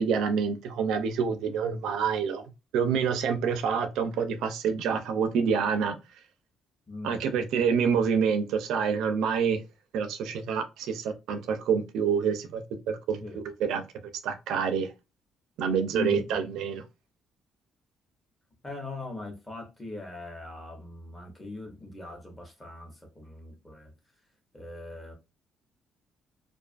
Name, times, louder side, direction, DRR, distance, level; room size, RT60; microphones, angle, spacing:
voice 1, 0.0-2.4 2.7-6.0 7.0-9.6 9.9-12.6 12.9-13.8 14.2-14.9 15.6-16.8, right 6 dB, 80° right, 0.4 m, -27 dB
voice 2, 6.9-7.2 13.2-13.5 15.9-16.3 18.6-23.9 24.5-25.1, left 2 dB, 10° left, 0.7 m, -40 dB
2.5 x 2.3 x 2.4 m
cardioid pair, 170°, 0 cm